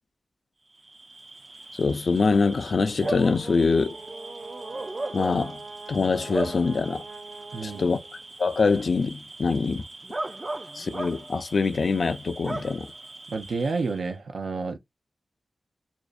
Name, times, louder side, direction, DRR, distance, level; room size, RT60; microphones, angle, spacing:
Bark / Cricket, 0.8-14.1, right 2 dB, 30° right, 0.4 m, -38 dB
voice 1, 1.7-4.0 5.1-5.6 5.9-7.0 7.6-8.0 8.4-9.8 10.8-12.9, left 4 dB, 65° left, 0.4 m, -24 dB
Brass instrument, 3.4-8.5, right 4 dB, 60° right, 0.7 m, -44 dB
voice 2, 13.3-14.8, right 4 dB, 90° right, 0.5 m, -29 dB
2.5 x 2.0 x 2.4 m
wide cardioid pair, 95°, 0 cm